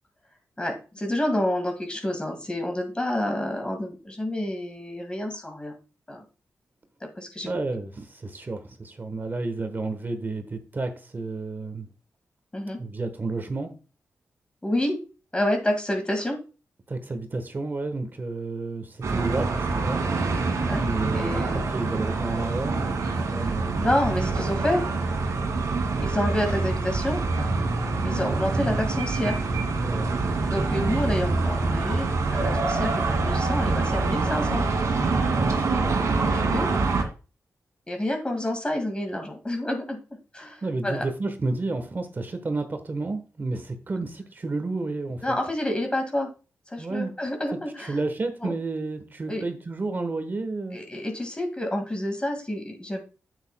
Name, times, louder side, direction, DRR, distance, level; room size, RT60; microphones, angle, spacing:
voice 1, 0.6-5.7 6.1-6.2 7.2-7.5 12.5-12.8 14.6-15.0 15.3-16.4 20.5-20.8 21.1-21.6 23.8-24.8 26.0-27.2 28.0-29.4 30.2-34.6 36.3-36.7 37.9-40.0 40.3-41.0 45.2-46.3 46.7-48.0 48.4-48.5 49.3-49.4 50.7-53.0, left 1 dB, 20° left, 3 dB, 2.0 m, -28 dB
voice 2, 7.4-11.9 12.8-13.7 16.9-20.1 20.7-23.9 28.1-28.7 29.8-30.1 35.2-36.0 40.6-45.2 46.8-47.1 47.8-50.8, right 3 dB, 35° right, 8 dB, 1.2 m, -31 dB
sound 1, 19.0-37.0, right 3 dB, 75° right, 1.9 m, -25 dB
8.8 x 8.1 x 2.2 m, 0.34 s
cardioid pair, 85°, 5 cm